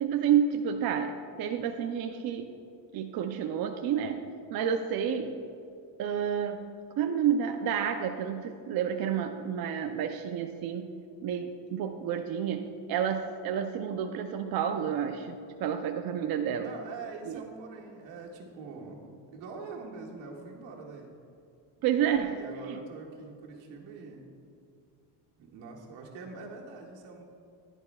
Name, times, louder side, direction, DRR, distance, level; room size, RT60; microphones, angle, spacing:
voice 1, 0.0-2.5 2.9-4.2 4.5-5.3 6.0-6.6 7.0-10.9 11.2-16.7 17.3-17.4 21.8-22.4 22.6-22.8, right 8 dB, 55° right, 5 dB, 0.6 m, -30 dB
voice 2, 16.5-19.0 19.3-21.1 22.0-24.2 25.4-27.2, right 4 dB, 90° right, -2 dB, 1.9 m, -44 dB
15.0 x 11.0 x 2.3 m, 2.4 s
cardioid pair, 150°, 43 cm